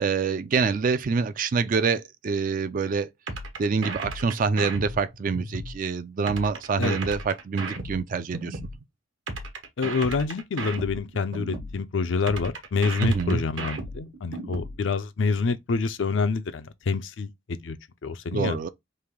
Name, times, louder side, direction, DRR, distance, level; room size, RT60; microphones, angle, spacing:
voice 1, 0.0-3.1 3.6-8.6 13.0-13.4 18.3-18.7, right 5 dB, 45° right, 0.3 m, -26 dB
sound 1, 3.3-5.8 6.3-8.8 9.3-11.8 12.3-14.8, right 2 dB, 70° right, 1.2 m, -34 dB
voice 2, 9.8-17.8 18.0-18.6, left 4 dB, 65° left, 0.5 m, -27 dB
3.3 x 2.6 x 3.6 m
head